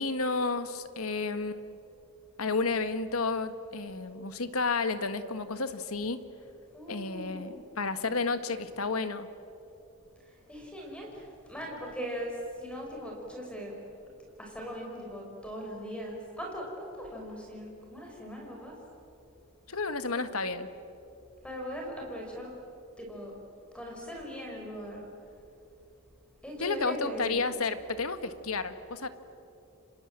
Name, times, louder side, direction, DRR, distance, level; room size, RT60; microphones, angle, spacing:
voice 1, 0.0-1.8 2.4-6.2 6.9-9.3 19.7-20.7 26.6-29.1, left 3 dB, 80° left, 10 dB, 1.6 m, -31 dB
voice 2, 6.4-7.6 8.5-8.7 10.2-13.8 14.4-18.7 21.4-22.5 23.0-23.3 23.7-25.1 26.4-27.4, equal, 5° left, -1 dB, 5.2 m, -40 dB
30.0 x 25.5 x 7.7 m, 2.8 s
head